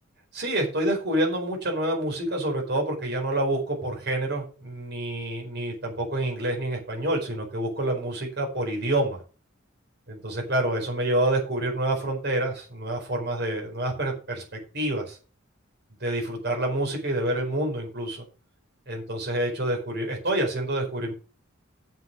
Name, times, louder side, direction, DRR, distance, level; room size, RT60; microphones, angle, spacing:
voice 1, 0.3-9.2 10.1-15.2 16.0-18.2 18.9-21.1, right 1 dB, 55° right, 1 dB, 4.7 m, -27 dB
8.0 x 7.4 x 6.3 m, 0.36 s
head